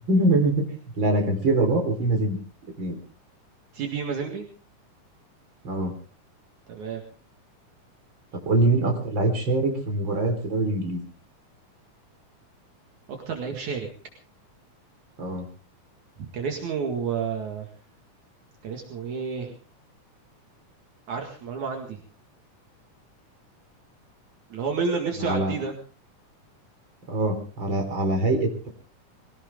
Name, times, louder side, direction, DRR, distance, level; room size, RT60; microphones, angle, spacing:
voice 1, 0.1-0.7 1.0-2.4 2.8-3.0 5.6-5.9 8.4-11.0 15.2-15.4 25.2-25.5 27.1-28.7, right 2 dB, 35° right, 4 dB, 4.5 m, -23 dB
voice 2, 3.7-4.5 6.7-7.0 13.1-13.9 16.2-17.7 18.6-19.6 21.1-22.0 24.5-25.8, right 5 dB, 65° right, 3 dB, 3.4 m, -30 dB
22.5 x 17.5 x 3.7 m, 0.36 s
omnidirectional pair, 3.6 m